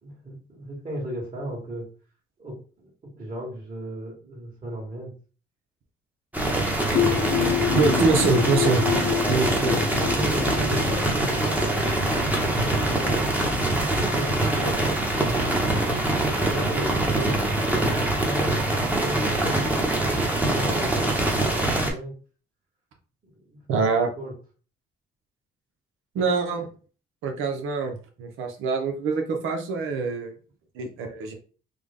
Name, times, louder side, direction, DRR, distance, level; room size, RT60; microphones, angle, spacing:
voice 1, 0.0-1.9 2.4-5.1 10.1-17.4 18.1-22.2 23.3-23.8 24.2-24.3, right 1 dB, 35° right, -6 dB, 1.9 m, -36 dB
sound 1, 6.3-21.9, right 1 dB, 10° right, 1.0 m, -24 dB
sound 2, 7.0-12.5, left 12 dB, 55° left, 0.4 m, -28 dB
voice 2, 7.8-8.8 9.3-9.8 23.7-24.1 26.1-26.7 27.2-30.3 30.7-31.3, right 4 dB, 90° right, 4 dB, 0.8 m, -24 dB
3.4 x 2.3 x 3.6 m, 0.38 s
cardioid pair, 90°, 20 cm